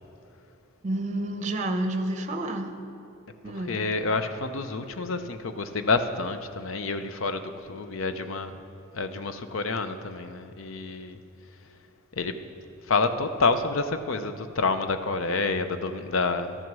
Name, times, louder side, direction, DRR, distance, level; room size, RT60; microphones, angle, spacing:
voice 1, 0.8-2.7 3.4-3.8, right 1 dB, 35° right, 7 dB, 0.8 m, -29 dB
voice 2, 3.5-8.5 8.9-11.2 12.1-12.3 12.9-16.6, left 3 dB, 70° left, 9 dB, 0.6 m, -28 dB
12.5 x 9.4 x 6.0 m, 2.7 s
head